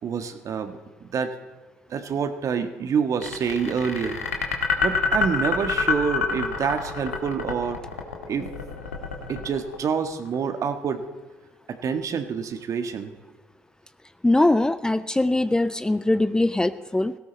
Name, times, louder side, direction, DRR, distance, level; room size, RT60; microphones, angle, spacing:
voice 1, 0.0-1.3 1.9-4.2 4.8-7.8 8.3-8.5 9.3-11.0 11.7-13.1, right 6 dB, 45° right, 8 dB, 1.6 m, -27 dB
sound 1, 3.2-10.3, left 5 dB, 90° left, 1.7 m, -27 dB
Chink clink, 5.4-10.6, left 7 dB, 50° left, 3.8 m, -44 dB
voice 2, 14.2-17.2, left 2 dB, 10° left, 14 dB, 0.6 m, -21 dB
18.5 x 17.0 x 4.2 m, 1.3 s
hypercardioid pair, 55°, 7 cm